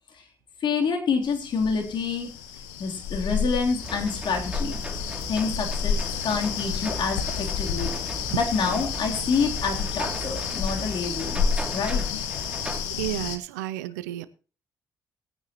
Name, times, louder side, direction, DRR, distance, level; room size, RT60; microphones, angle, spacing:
voice 1, 0.6-2.3 2.8-4.8 5.3-6.0 6.2-7.9 8.3-11.4 11.7-12.0, left 5 dB, 60° left, 1 dB, 3.4 m, -27 dB
sound 1, 1.2-13.4, left 6 dB, 85° left, 1.2 m, -30 dB
sound 2, 3.8-12.8, right 1 dB, 10° right, 2.9 m, -38 dB
voice 2, 13.0-14.3, right 15 dB, 85° right, 15 dB, 0.7 m, -31 dB
20.5 x 9.5 x 3.0 m, 0.37 s
hypercardioid pair, 45°, 9 cm